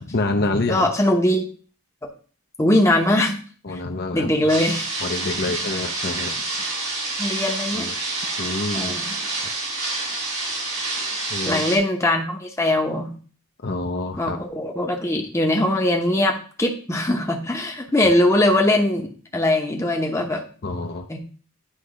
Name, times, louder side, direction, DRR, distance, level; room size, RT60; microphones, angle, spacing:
voice 1, 0.0-0.9 3.6-4.6 5.0-6.4 7.7-7.9 8.4-9.0 11.3-11.6 13.6-14.4 20.6-21.1, left 2 dB, 45° left, 4 dB, 0.7 m, -27 dB
voice 2, 0.7-1.5 2.6-3.4 3.7-3.8 4.1-4.9 7.2-7.9 8.7-9.1 11.5-13.1 14.2-20.4 21.1-21.2, left 1 dB, 15° left, 2 dB, 0.8 m, -21 dB
sound 1, 4.5-11.8, right 2 dB, 75° right, 3.6 m, -28 dB
9.7 x 3.3 x 4.9 m, 0.41 s
head